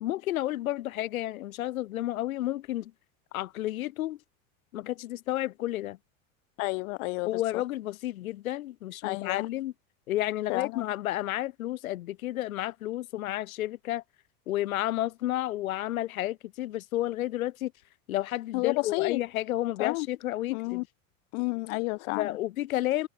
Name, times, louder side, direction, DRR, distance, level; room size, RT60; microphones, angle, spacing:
voice 1, 0.0-2.9 3.3-4.2 4.7-6.0 7.2-9.7 10.1-14.0 14.5-17.7 18.1-20.8 22.1-23.1, left 15 dB, 85° left, 1.1 m, -31 dB
voice 2, 6.6-7.4 9.0-9.5 10.5-10.8 18.5-19.2 19.8-20.1 20.5-20.8 21.3-22.3, left 29 dB, 60° left, 0.5 m, -30 dB
hypercardioid pair, 100°, 41 cm